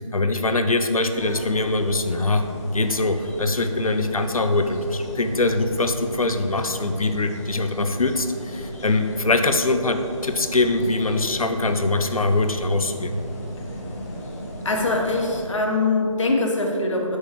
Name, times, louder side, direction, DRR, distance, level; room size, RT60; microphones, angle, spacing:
voice 1, 0.1-2.5 2.7-13.1, left 2 dB, 90° left, 7 dB, 0.7 m, -23 dB
sound 1, 1.1-15.5, equal, 25° left, 1.0 m, -35 dB
voice 2, 14.6-17.2, left 2 dB, 60° left, 0 dB, 1.3 m, -22 dB
8.3 x 6.3 x 3.2 m, 2.6 s
figure-of-eight pair, 160°, 18 cm